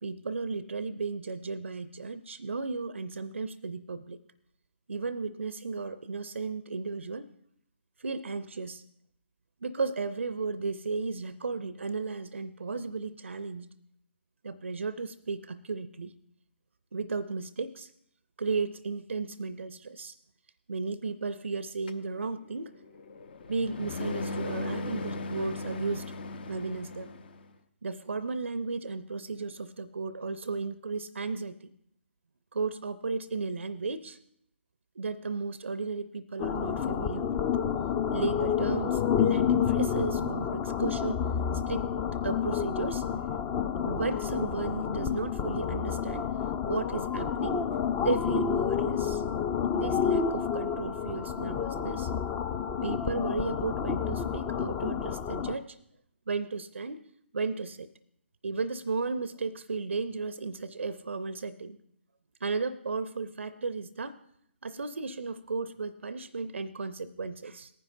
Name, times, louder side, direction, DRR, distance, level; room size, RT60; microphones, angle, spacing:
voice 1, 0.0-4.2 4.9-7.3 8.0-8.8 9.6-13.7 14.4-16.1 16.9-17.9 18.4-20.2 20.7-22.7 23.5-26.1 26.5-27.1 27.8-31.7 32.5-34.2 35.0-37.4 38.1-41.9 42.2-43.1 43.8-46.3 46.6-47.7 48.0-49.2 49.7-52.1 52.8-55.8 56.3-57.0 57.3-57.9 58.4-61.8 62.4-64.2 64.6-67.7, right 4 dB, 75° right, 14 dB, 0.5 m, -34 dB
sound 1, 21.9-27.5, left 3 dB, 50° left, 0.7 m, -38 dB
sound 2, 36.4-55.6, left 7 dB, 20° left, 0.4 m, -29 dB
18.5 x 10.0 x 2.5 m, 0.70 s
figure-of-eight pair, 140°, 7 cm